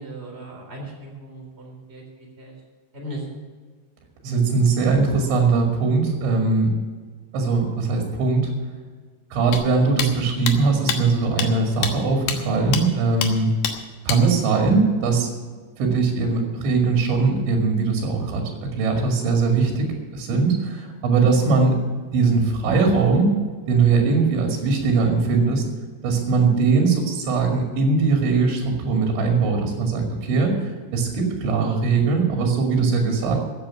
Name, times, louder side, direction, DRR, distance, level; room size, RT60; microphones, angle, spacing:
voice 1, 0.0-2.5 2.9-3.3, right 1 dB, 15° right, 0 dB, 3.4 m, -37 dB
voice 2, 4.2-6.7 7.3-8.5 9.3-13.5 14.1-15.3 15.8-21.8 22.1-23.3 23.7-25.7 26.0-33.4, right 4 dB, 90° right, 2 dB, 4.6 m, -20 dB
sound 1, 9.5-9.6 10.0-10.1 10.5-10.6 10.9-11.0 11.4-11.5 11.8-11.9 12.3-12.4 12.7-12.8 13.2-13.3 13.6-13.7 14.1-14.2, left 8 dB, 70° left, 3.2 m, -25 dB
15.0 x 8.5 x 7.1 m, 1.5 s
omnidirectional pair, 5.1 m